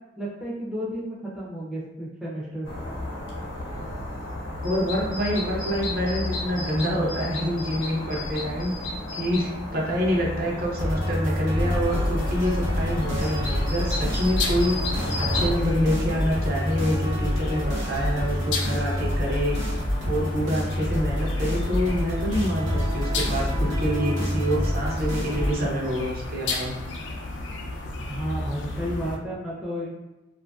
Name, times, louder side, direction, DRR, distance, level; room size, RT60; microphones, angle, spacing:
voice 1, 0.2-2.7 28.1-29.9, equal, 5° right, -7 dB, 0.4 m, -32 dB
sound 1, 2.6-15.5, left 1 dB, 85° left, 0.8 m, -32 dB
voice 2, 4.6-19.8 20.0-26.8, equal, 50° right, -3 dB, 0.6 m, -27 dB
sound 2, 10.8-25.6, equal, 85° right, 0.9 m, -27 dB
sound 3, 11.6-29.2, left 2 dB, 70° left, 0.4 m, -33 dB
2.6 x 2.5 x 2.2 m, 1.0 s
head